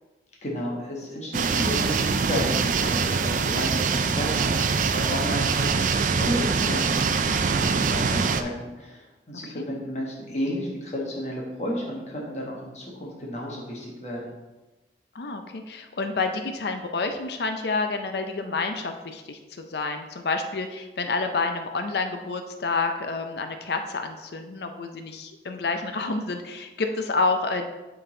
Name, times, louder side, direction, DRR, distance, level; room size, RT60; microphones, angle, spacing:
voice 1, 0.4-14.3, equal, 40° left, -3 dB, 1.3 m, -32 dB
sound 1, 1.3-8.4, right 5 dB, 45° right, 0.4 m, -24 dB
voice 2, 15.1-19.4 19.7-27.7, left 3 dB, 65° left, 6 dB, 0.5 m, -29 dB
9.0 x 3.9 x 3.8 m, 1.1 s
head